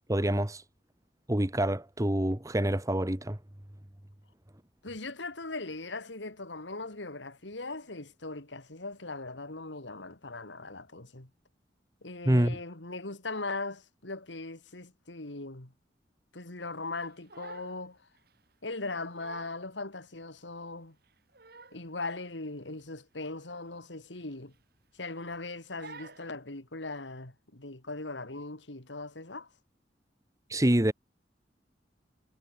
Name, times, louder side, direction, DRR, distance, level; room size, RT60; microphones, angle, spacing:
voice 1, 0.1-0.6 1.3-3.4 12.2-12.6 30.5-30.9, right 1 dB, 20° right, 1.5 m, -26 dB
voice 2, 4.8-11.3 12.0-15.7 16.3-18.0 18.6-21.0 21.7-24.5 24.9-29.5, left 3 dB, 90° left, 2.9 m, -39 dB
Crying sobbing, 17.0-17.8 18.2-18.4 18.9-19.0 19.2-19.6 20.2-20.3 21.0-21.9 22.2-22.4 22.8-22.9 23.3-23.4 24.2-24.8 25.1-25.4 25.8-26.3, right 3 dB, 60° right, 8.0 m, -49 dB
head